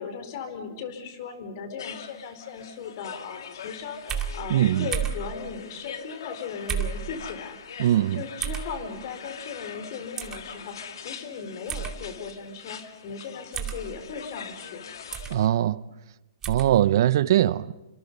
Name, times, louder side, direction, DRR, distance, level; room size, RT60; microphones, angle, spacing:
voice 1, 0.0-7.8 8.1-14.9 16.6-16.7, left 6 dB, 55° left, 4.5 m, -37 dB
sound 1, 1.8-15.5, left 7 dB, 80° left, 2.2 m, -43 dB
sound 2, 4.1-4.3 4.9-5.2 6.7-7.0 8.4-8.7 10.2-10.4 11.7-11.9 13.5-13.8 15.1-15.4 16.4-16.7, right 9 dB, 20° right, 2.5 m, -30 dB
voice 2, 4.5-4.9 7.8-8.2 15.3-15.8 16.5-17.7, right 12 dB, 65° right, 0.7 m, -21 dB
28.0 x 25.5 x 5.5 m
hypercardioid pair, 135°, 2 cm